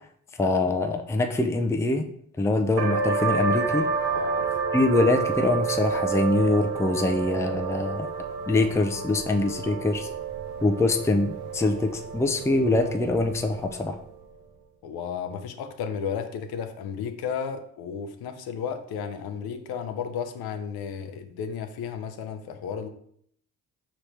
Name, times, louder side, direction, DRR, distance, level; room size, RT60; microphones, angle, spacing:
voice 1, 0.4-2.1 2.4-3.9 4.7-8.1 8.5-10.1 10.6-14.0, left 2 dB, 5° left, 5 dB, 0.4 m, -24 dB
sound 1, 2.8-14.1, right 5 dB, 75° right, 0.7 m, -30 dB
voice 2, 4.0-4.5 14.8-22.9, left 7 dB, 70° left, 8 dB, 0.7 m, -33 dB
4.9 x 3.0 x 3.2 m, 0.66 s
supercardioid pair, 70°, 39 cm